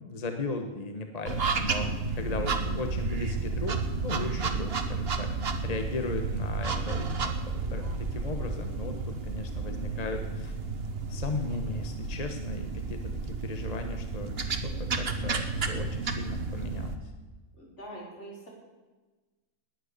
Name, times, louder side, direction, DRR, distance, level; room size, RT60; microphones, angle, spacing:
voice 1, 0.0-5.3 5.6-7.4 7.7-10.5 11.1-17.1, left 3 dB, 30° left, 5 dB, 1.2 m, -37 dB
sound 1, 1.3-16.9, right 4 dB, 50° right, 1.4 m, -32 dB
voice 2, 17.6-18.5, right 1 dB, 60° left, -4 dB, 5.2 m, -44 dB
19.0 x 9.6 x 6.7 m, 1.2 s
omnidirectional pair, 1.4 m